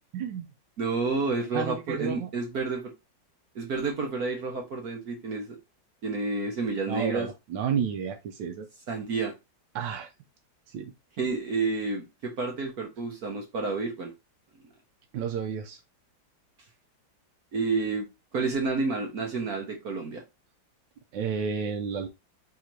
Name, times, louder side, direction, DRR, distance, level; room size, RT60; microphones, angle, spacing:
voice 1, 0.1-0.5 1.5-2.3 6.9-8.7 9.7-10.1 10.7-10.9 15.1-15.8 21.1-22.1, right 7 dB, 80° right, 4 dB, 1.4 m, -31 dB
voice 2, 0.8-2.9 3.5-5.6 6.0-7.3 8.9-9.3 11.2-14.1 17.5-18.1 18.3-20.2, right 4 dB, 55° right, 2 dB, 1.4 m, -30 dB
4.2 x 2.8 x 4.5 m, 0.23 s
omnidirectional pair, 2.0 m